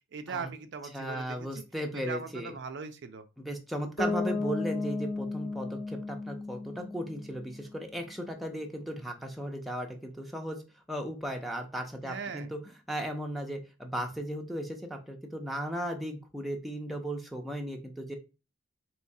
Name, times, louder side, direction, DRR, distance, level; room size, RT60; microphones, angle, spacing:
voice 1, 0.1-1.6 1.9-3.2 12.0-12.5, right 5 dB, 55° right, 8 dB, 0.4 m, -40 dB
voice 2, 0.9-2.5 3.4-10.6 10.9-12.6 12.9-18.2, right 1 dB, ahead, 2 dB, 0.5 m, -36 dB
Bass guitar, 4.0-7.8, left 3 dB, 35° left, 0.9 m, -34 dB
4.6 x 3.0 x 2.6 m, 0.30 s
head